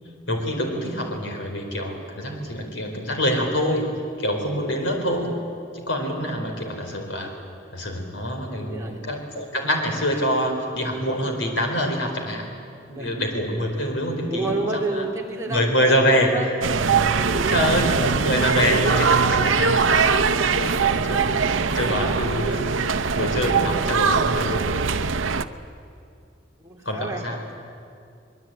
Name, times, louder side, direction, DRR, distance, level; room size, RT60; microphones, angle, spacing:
voice 1, 0.3-3.9 4.2-5.3 5.7-7.3 7.7-12.4 12.9-15.0 15.5-16.3 17.5-22.6 22.9-24.6 26.8-27.4, equal, 75° left, 3 dB, 4.3 m, -25 dB
voice 2, 8.6-9.0 13.0-13.1 14.3-16.5 17.1-17.6 21.6-22.2 26.6-27.3, right 2 dB, 15° right, -2 dB, 3.2 m, -30 dB
sound 1, 16.6-25.4, right 5 dB, 90° right, 0.8 m, -21 dB
23.5 x 22.0 x 9.1 m, 2.4 s
head